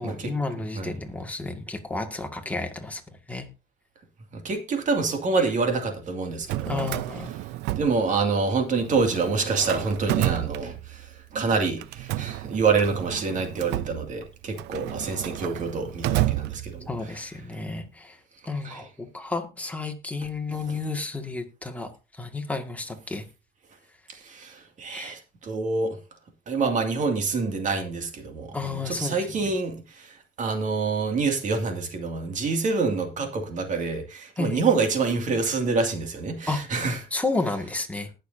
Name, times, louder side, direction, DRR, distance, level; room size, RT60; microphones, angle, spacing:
voice 1, 0.0-3.0 3.3-3.5 5.4-5.5 6.7-7.3 16.9-18.2 18.5-23.2 24.9-25.2 28.5-29.4 34.4-34.6 36.5-36.6 37.1-38.1, left 3 dB, 10° left, 1.9 m, -31 dB
voice 2, 4.3-6.9 7.8-11.1 11.3-16.9 18.6-18.8 24.1-26.0 26.5-37.0, right 4 dB, 50° right, 2.2 m, -27 dB
Drawer open or close, 6.3-8.5 8.8-11.2 11.8-17.1, right 16 dB, 85° right, 0.5 m, -31 dB
19.0 x 6.7 x 2.7 m
cardioid pair, 110°, 17 cm